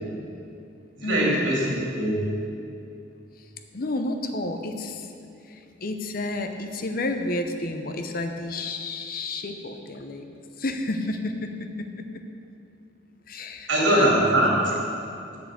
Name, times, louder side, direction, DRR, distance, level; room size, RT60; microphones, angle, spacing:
voice 1, 1.0-2.2 13.7-14.6, right 1 dB, 80° right, -4 dB, 2.7 m, -21 dB
voice 2, 3.7-5.1 5.5-11.5 12.0-12.1 13.3-14.2 14.6-14.7, left 2 dB, 45° left, 6 dB, 0.7 m, -31 dB
8.2 x 6.6 x 7.7 m, 2.6 s
head